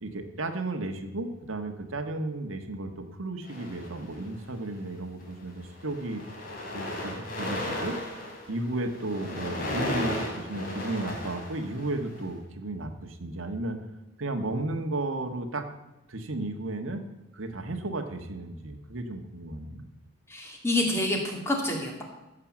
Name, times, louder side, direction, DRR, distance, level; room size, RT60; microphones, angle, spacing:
voice 1, 0.0-6.2 6.7-8.0 8.5-13.8 14.2-15.7 16.1-17.0 17.3-19.8, right 2 dB, 85° right, 5 dB, 1.4 m, -34 dB
sound 1, 3.4-4.4 5.2-5.4 5.7-12.2, left 1 dB, 45° left, 3.1 m, -35 dB
voice 2, 20.3-22.0, left 1 dB, 15° left, 1 dB, 2.2 m, -28 dB
15.0 x 6.7 x 7.4 m, 0.97 s
head